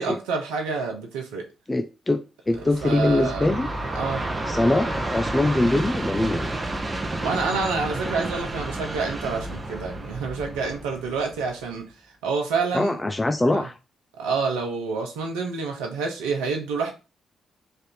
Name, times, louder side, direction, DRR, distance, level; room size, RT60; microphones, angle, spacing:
voice 1, 0.0-1.4 2.8-3.5 3.9-4.2 7.2-11.8 12.2-13.0 13.5-13.7 14.2-16.9, right 4 dB, 80° right, 0.7 m, -28 dB
voice 2, 1.7-3.7 4.5-6.5 12.7-13.8, left 2 dB, 20° left, 0.4 m, -23 dB
Train, 2.5-11.7, right 2 dB, 30° right, 0.8 m, -31 dB
3.3 x 2.5 x 4.2 m
hypercardioid pair, 40°, 0 cm